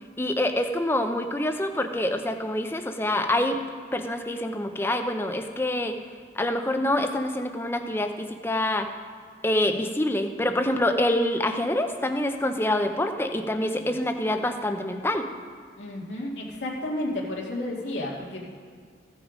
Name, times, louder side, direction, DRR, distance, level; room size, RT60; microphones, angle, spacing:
voice 1, 0.2-3.6 3.9-5.9 6.4-8.9 9.4-15.2, left 1 dB, 15° left, 6 dB, 0.6 m, -26 dB
voice 2, 15.8-18.4, left 1 dB, 90° left, -4 dB, 2.2 m, -32 dB
15.0 x 6.3 x 5.1 m, 2.1 s
head